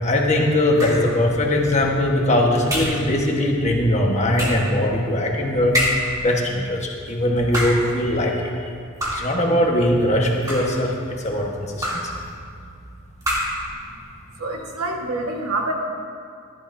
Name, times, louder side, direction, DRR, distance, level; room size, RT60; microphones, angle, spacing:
voice 1, 0.0-5.7 6.2-8.4 8.6-8.7 9.1-10.9 11.2-11.5 11.7-12.0, left 1 dB, 30° left, 0 dB, 1.3 m, -20 dB
sound 1, 0.8-1.2 2.7-3.1 4.4-4.7 5.7-6.2 7.4-7.9 9.0-9.4 10.3-10.9 11.8-12.2 13.2-13.7, equal, 15° right, 1.9 m, -25 dB
voice 2, 14.4-15.7, right 2 dB, 80° right, 0 dB, 1.5 m, -26 dB
14.5 x 11.0 x 2.7 m, 2.4 s
head